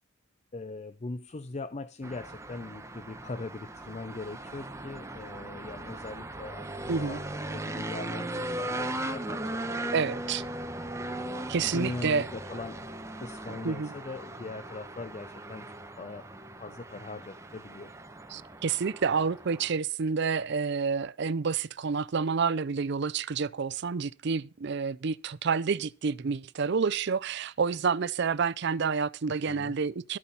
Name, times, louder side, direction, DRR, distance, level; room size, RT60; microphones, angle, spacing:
voice 1, 0.5-10.2 11.5-12.8 13.2-16.3 16.6-17.9 29.5-29.8, left 3 dB, 30° left, 0.5 m, -41 dB
sound 1, 2.0-19.7, right 1 dB, 15° right, 0.9 m, -38 dB
voice 2, 9.9-10.4 11.5-12.3 13.6-13.9 18.3-30.2, right 5 dB, 55° right, 0.5 m, -29 dB
13.0 x 8.5 x 5.5 m
head